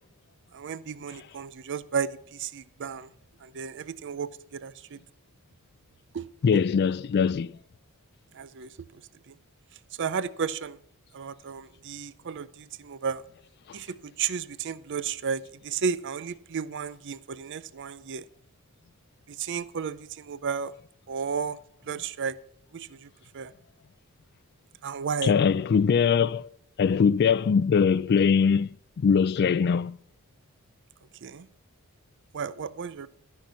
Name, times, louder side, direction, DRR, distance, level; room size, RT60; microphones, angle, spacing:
voice 1, 0.5-3.1 3.4-5.0 6.1-6.3 6.5-6.6 8.3-9.0 9.3-9.4 10.0-10.8 11.1-13.2 13.7-18.3 19.3-20.7 21.1-21.6 21.9-22.4 22.7-23.5 24.8-25.3 31.2-31.5 32.3-33.1, right 6 dB, 55° right, 0.5 m, -33 dB
voice 2, 6.4-7.5 25.2-26.5 26.8-28.7 29.0-30.0, left 6 dB, 50° left, 0.3 m, -22 dB
13.0 x 5.8 x 5.7 m
head